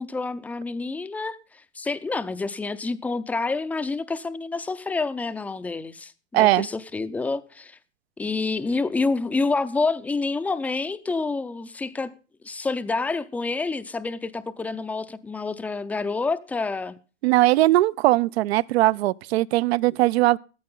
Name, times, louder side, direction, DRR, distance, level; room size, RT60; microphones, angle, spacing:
voice 1, 0.0-1.4 1.7-7.8 8.2-12.1 12.4-17.0, left 3 dB, 5° left, 0.5 m, -28 dB
voice 2, 6.3-6.7 17.2-20.4, right 17 dB, 65° right, 0.7 m, -20 dB
14.5 x 13.5 x 3.8 m
supercardioid pair, 150°, 35 cm